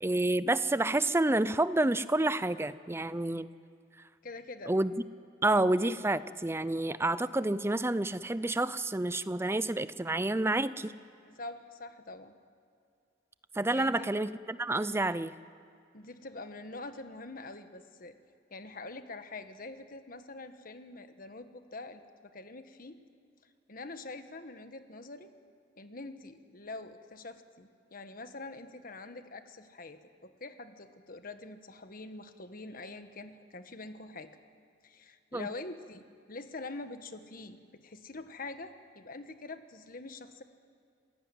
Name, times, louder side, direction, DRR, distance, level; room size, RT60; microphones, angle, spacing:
voice 1, 0.0-3.5 4.7-4.9 5.4-10.9 13.5-15.3 35.3-35.5, right 2 dB, 15° right, 15 dB, 0.5 m, -29 dB
voice 2, 4.2-4.8 11.3-12.3 13.7-14.1 15.9-18.1 18.5-23.0 23.7-25.3 25.8-34.4 34.8-40.4, left 3 dB, 50° left, 9 dB, 1.4 m, -45 dB
27.5 x 16.0 x 9.1 m, 2.4 s
head